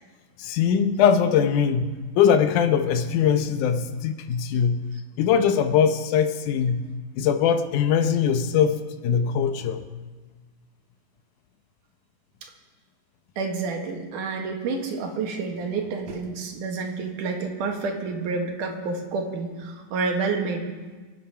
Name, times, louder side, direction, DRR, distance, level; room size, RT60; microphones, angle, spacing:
voice 1, 0.4-4.9 5.2-9.9, left 7 dB, 75° left, 8 dB, 2.3 m, -22 dB
voice 2, 13.4-20.7, right 4 dB, 75° right, 2 dB, 3.2 m, -29 dB
24.5 x 9.1 x 5.7 m, 1.4 s
omnidirectional pair, 3.7 m